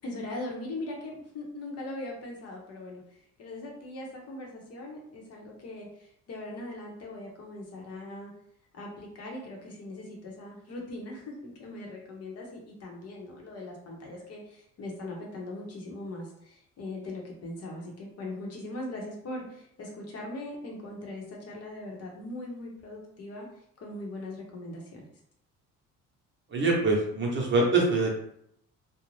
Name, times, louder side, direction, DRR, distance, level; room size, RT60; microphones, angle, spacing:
voice 1, 0.0-8.3 8.7-25.1, left 2 dB, 55° left, -1 dB, 0.8 m, -40 dB
voice 2, 26.5-28.1, right 3 dB, 40° right, -2 dB, 0.7 m, -24 dB
2.5 x 2.1 x 3.1 m, 0.72 s
cardioid pair, 130°, 31 cm